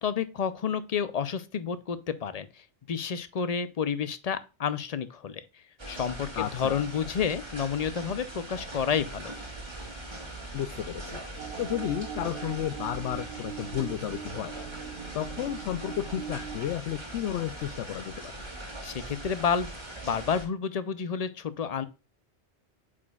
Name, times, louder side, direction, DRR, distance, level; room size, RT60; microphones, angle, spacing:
voice 1, 0.0-5.4 5.9-9.4 18.6-19.7 20.0-21.9, left 7 dB, 45° left, 0.5 m, -30 dB
sound 1, 5.8-20.4, right 2 dB, 25° right, 1.7 m, -41 dB
voice 2, 6.4-6.8 10.5-11.2 11.6-14.5 15.1-18.4, left 11 dB, 90° left, 0.9 m, -32 dB
sound 2, 11.4-16.6, right 8 dB, 65° right, 0.8 m, -41 dB
8.2 x 5.0 x 2.3 m
omnidirectional pair, 1.1 m